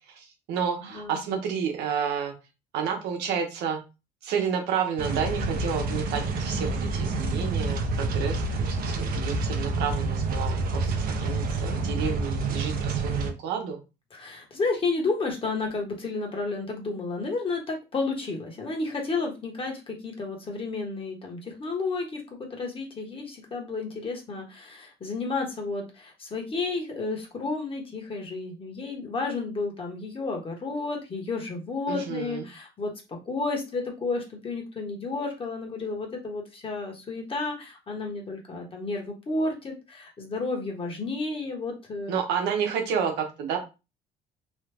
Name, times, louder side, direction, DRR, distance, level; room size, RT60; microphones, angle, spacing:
voice 1, 0.1-2.3 2.7-3.8 4.2-13.8 31.9-32.4 42.1-43.6, right 7 dB, 90° right, 3 dB, 0.9 m, -30 dB
sound 1, 5.0-13.3, right 3 dB, 60° right, 0.7 m, -28 dB
voice 2, 14.1-22.2 22.5-32.9 33.2-42.2, left 3 dB, 30° left, 0 dB, 1.2 m, -31 dB
3.1 x 2.2 x 3.4 m, 0.28 s
cardioid pair, 110°, 17 cm